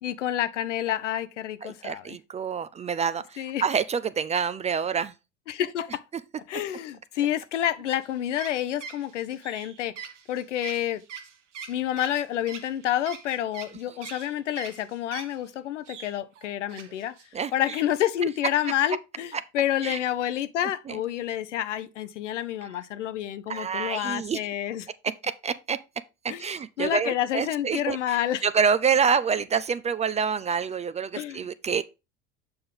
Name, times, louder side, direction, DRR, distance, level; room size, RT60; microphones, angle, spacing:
voice 1, 0.0-2.2 3.4-3.6 5.5-6.0 6.5-9.9 10.3-11.0 11.7-17.1 17.5-24.9 26.3-26.4 26.8-28.4 31.1-31.4, left 11 dB, 85° left, 0.6 m, -29 dB
voice 2, 1.6-5.1 17.3-17.5 18.2-18.3 19.3-19.4 19.8-20.0 20.9-21.0 23.5-24.4 25.0-25.8 26.2-31.8, right 6 dB, 20° right, 0.3 m, -27 dB
sound 1, 7.8-15.5 15.9-17.3 17.6-17.9, right 7 dB, 85° right, 0.9 m, -43 dB
6.9 x 5.3 x 3.7 m
hypercardioid pair, 75°, 36 cm